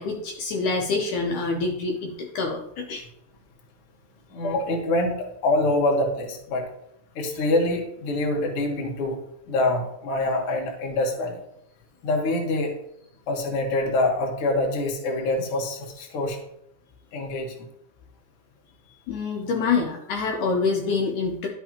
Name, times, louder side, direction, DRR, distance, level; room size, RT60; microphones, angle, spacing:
voice 1, 0.0-3.0 19.1-21.5, left 4 dB, 70° left, 1 dB, 2.1 m, -26 dB
voice 2, 4.3-6.6 7.1-9.2 9.5-11.4 12.0-12.7 13.3-16.4 17.1-17.6, left 2 dB, 55° left, 1 dB, 1.7 m, -25 dB
11.5 x 5.8 x 2.9 m, 0.77 s
omnidirectional pair, 4.0 m